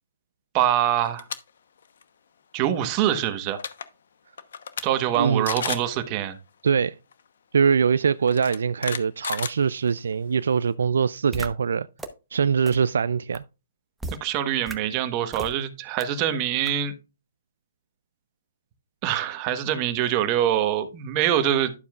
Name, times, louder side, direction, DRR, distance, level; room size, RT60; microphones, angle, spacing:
voice 1, 0.5-1.3 2.5-3.6 4.8-6.4 14.2-16.9 19.0-21.7, right 11 dB, 30° right, 1.2 m, -24 dB
sound 1, 1.0-1.4 1.8-2.0 3.2-3.3 3.5-3.9 4.4-4.8 5.1-5.2 5.5-5.9 7.1-7.2 8.3-10.1, left 7 dB, 70° left, 1.0 m, -32 dB
voice 2, 5.2-5.5 6.6-6.9 7.5-11.9 12.3-13.4, right 6 dB, 75° right, 0.3 m, -22 dB
sound 2, 11.3-11.5 12.0-12.1 12.7-12.8 13.3-13.4 14.0-14.2 14.7-14.8 15.3-15.5 16.0-16.1 16.7-16.8, right 2 dB, 5° right, 0.9 m, -33 dB
11.5 x 7.0 x 2.4 m
hypercardioid pair, 145°, 0 cm